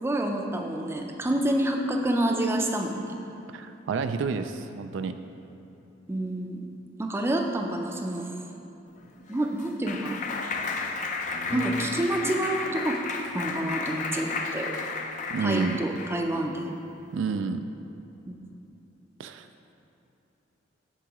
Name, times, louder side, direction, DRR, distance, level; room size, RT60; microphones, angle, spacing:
voice 1, 0.0-3.2 6.1-6.6 7.0-8.2 9.3-10.2 11.5-13.0 13.3-14.7 15.4-16.7 18.3-18.4, right 1 dB, 15° right, 3 dB, 0.4 m, -28 dB
voice 2, 3.5-5.1 15.3-15.8 17.1-17.6 19.2-19.5, right 5 dB, 75° right, 9 dB, 0.3 m, -29 dB
Clapping, 9.0-16.3, left 3 dB, 40° left, 0.4 m, -32 dB
8.3 x 6.9 x 3.0 m, 2.9 s
head